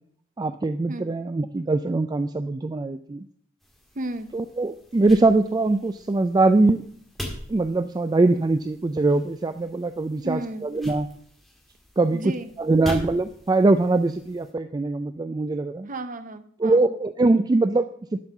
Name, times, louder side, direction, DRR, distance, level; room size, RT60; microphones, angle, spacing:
voice 1, 0.4-3.3 4.3-6.8 7.5-11.1 12.0-12.3 12.6-15.9 16.6-18.2, right 2 dB, 20° right, 10 dB, 0.3 m, -22 dB
sound 1, 3.6-14.5, equal, ahead, 1.9 m, -41 dB
voice 2, 3.9-4.3 10.2-10.7 12.1-12.5 15.9-16.8, right 1 dB, 40° right, 11 dB, 0.8 m, -33 dB
11.5 x 5.5 x 6.6 m, 0.62 s
head